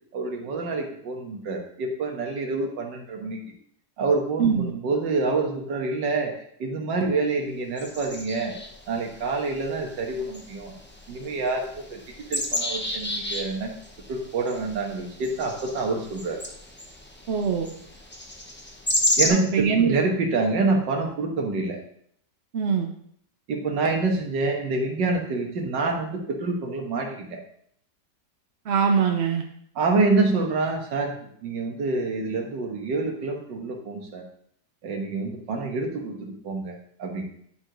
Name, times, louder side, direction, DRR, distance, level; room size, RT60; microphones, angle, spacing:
voice 1, 0.1-3.4 4.0-6.3 6.6-8.5 8.9-10.7 11.1-13.7 14.1-16.4 19.2-21.8 23.5-27.4 29.8-31.1 31.4-34.2 34.8-37.2, right 3 dB, 85° right, 2 dB, 2.0 m, -27 dB
voice 2, 4.4-4.7 17.3-17.7 19.3-20.0 22.5-22.9 28.7-29.4, right 6 dB, 55° right, 3 dB, 0.7 m, -22 dB
sound 1, 7.8-19.3, left 1 dB, 10° left, 0.6 m, -32 dB
10.5 x 4.8 x 3.9 m, 0.66 s
omnidirectional pair, 1.9 m